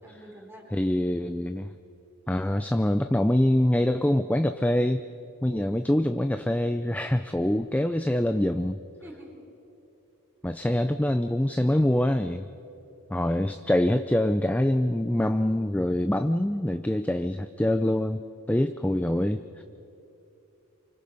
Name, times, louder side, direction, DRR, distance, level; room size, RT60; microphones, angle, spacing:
voice 1, 0.0-0.7 8.2-8.4 9.0-9.3, equal, 10° right, 0 dB, 4.1 m, -47 dB
voice 2, 0.7-1.7 2.3-5.1 5.4-8.8 10.4-12.5 13.1-18.2 18.5-19.6, left 1 dB, 5° left, 9 dB, 0.4 m, -25 dB
28.5 x 25.0 x 5.5 m, 2.9 s
head